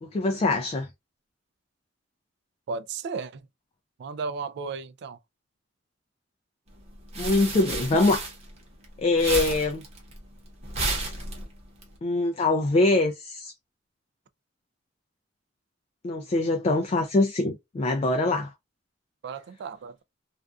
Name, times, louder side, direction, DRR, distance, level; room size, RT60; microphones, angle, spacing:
voice 1, 0.0-0.9 7.2-8.2 9.0-9.8 12.0-13.5 16.0-18.5, left 2 dB, 35° left, 0.3 m, -23 dB
voice 2, 2.7-3.5 4.0-5.2 19.2-20.0, right 4 dB, 60° right, 0.3 m, -34 dB
sound 1, 6.8-8.8 9.1-11.8, right 2 dB, 35° right, 0.9 m, -32 dB
2.4 x 2.2 x 2.3 m
head